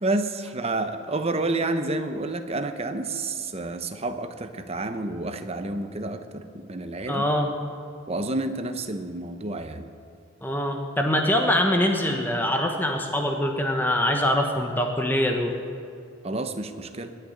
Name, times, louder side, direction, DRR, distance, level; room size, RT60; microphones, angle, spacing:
voice 1, 0.0-7.2 8.1-9.9 16.2-17.1, right 2 dB, 30° right, 8 dB, 0.9 m, -29 dB
voice 2, 7.1-7.5 10.4-15.6, left 1 dB, 10° left, 3 dB, 1.1 m, -24 dB
20.0 x 6.7 x 9.5 m, 2.5 s
head